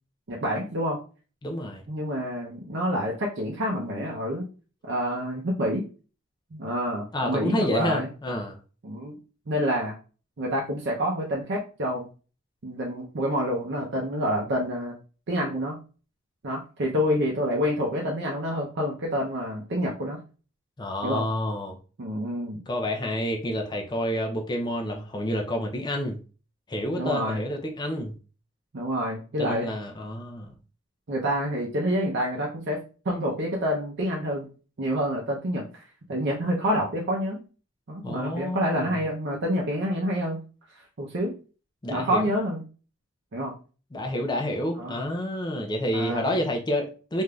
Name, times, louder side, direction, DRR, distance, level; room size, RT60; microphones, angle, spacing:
voice 1, 0.3-1.0 1.9-4.4 4.8-5.8 6.5-8.1 8.8-9.2 9.5-9.9 10.4-12.1 12.6-15.0 15.3-15.8 16.4-20.2 21.0-21.2 22.0-22.6 27.0-27.4 28.7-29.7 31.1-32.8 33.0-34.5 34.8-35.8 36.1-37.4 37.9-40.4 40.7-41.3 41.9-42.6 43.3-43.5 44.8-45.0 45.9-46.4, equal, 60° right, -2 dB, 0.6 m, -28 dB
voice 2, 1.4-1.9 7.1-8.6 20.8-21.8 22.7-26.2 26.7-28.1 29.4-30.5 38.0-39.0 41.8-42.3 43.9-47.2, left 1 dB, 20° left, 2 dB, 0.4 m, -29 dB
3.3 x 2.5 x 2.3 m, 0.36 s
head